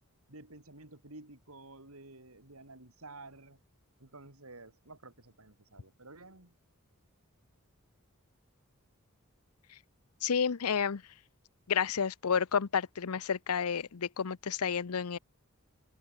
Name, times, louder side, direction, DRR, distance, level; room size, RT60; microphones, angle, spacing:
voice 1, 0.3-3.6 4.0-6.5, right 2 dB, 75° right, 5.8 m, -51 dB
voice 2, 10.2-11.0 11.7-15.2, left 6 dB, 85° left, 0.7 m, -30 dB
open air
head